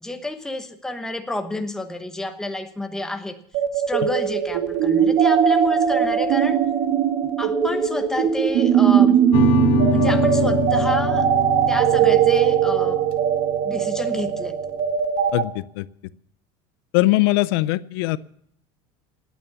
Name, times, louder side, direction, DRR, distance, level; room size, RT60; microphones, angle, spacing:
voice 1, 0.0-3.4 3.7-6.6 7.4-9.2 9.9-11.3 11.7-13.0 13.6-14.6, left 2 dB, 5° left, 7 dB, 1.1 m, -30 dB
sound 1, 3.5-15.4, right 8 dB, 60° right, 1.9 m, -19 dB
sound 2, 9.3-14.5, left 11 dB, 50° left, 0.8 m, -27 dB
voice 2, 15.3-15.9 16.9-18.2, left 19 dB, 80° left, 18 dB, 0.5 m, -20 dB
17.5 x 9.4 x 7.0 m, 0.69 s
cardioid pair, 165°, 12 cm